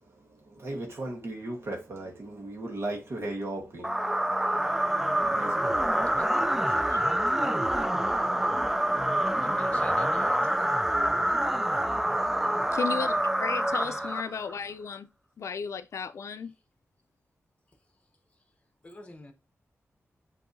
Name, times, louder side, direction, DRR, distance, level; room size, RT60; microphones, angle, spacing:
voice 1, 0.0-3.9 4.8-6.2, right 2 dB, 55° right, 1.2 m, -37 dB
sound 1, 3.8-14.6, right 1 dB, 5° right, 0.3 m, -26 dB
voice 2, 4.6-5.3 6.1-7.1 9.4-10.6 13.8-14.2 18.8-19.3, left 2 dB, 25° left, 0.9 m, -50 dB
voice 3, 12.7-15.1 15.4-16.5, left 6 dB, 75° left, 0.4 m, -34 dB
7.6 x 2.7 x 2.6 m
wide cardioid pair, 120°, 5 cm